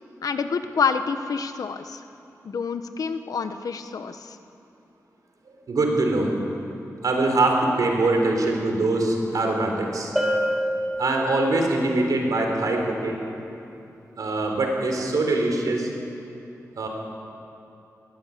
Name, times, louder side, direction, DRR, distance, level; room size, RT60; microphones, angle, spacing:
voice 1, 0.2-2.0 2.4-4.4, left 5 dB, 80° left, 9 dB, 1.1 m, -27 dB
voice 2, 5.7-6.3 7.0-10.1 11.0-13.2 14.2-15.9 16.8-16.9, right 2 dB, 80° right, 2 dB, 3.9 m, -23 dB
Bell, 10.2-11.7, equal, 5° right, 3.3 m, -26 dB
20.5 x 16.5 x 8.5 m, 2.8 s
wide cardioid pair, 85°, 6 cm